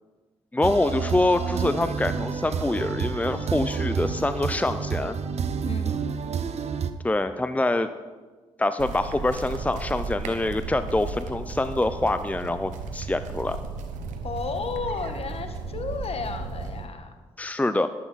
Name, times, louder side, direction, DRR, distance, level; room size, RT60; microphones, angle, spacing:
voice 1, 0.5-5.1 7.0-7.9 8.6-13.6 17.4-17.9, left 2 dB, 10° left, 11 dB, 0.7 m, -25 dB
sound 1, 0.6-6.9, right 6 dB, 60° right, 0.9 m, -29 dB
voice 2, 5.6-6.0 14.2-17.1, left 4 dB, 50° left, 6 dB, 1.7 m, -33 dB
sound 2, 8.8-16.9, right 4 dB, 80° right, 1.2 m, -35 dB
13.0 x 12.0 x 4.2 m, 1.3 s
hypercardioid pair, 45°, 13 cm